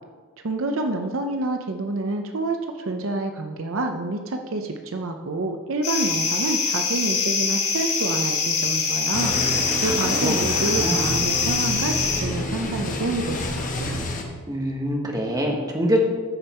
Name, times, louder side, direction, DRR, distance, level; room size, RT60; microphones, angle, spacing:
voice 1, 0.4-13.5 13.8-14.0, right 2 dB, 65° right, 5 dB, 0.7 m, -28 dB
sound 1, 5.8-12.2, left 5 dB, 85° left, 3.0 m, -24 dB
sound 2, 9.1-14.2, left 1 dB, 40° left, 1.2 m, -28 dB
voice 2, 9.8-11.0 14.5-16.0, equal, 20° right, 0 dB, 1.4 m, -25 dB
14.0 x 5.4 x 4.4 m, 1.4 s
head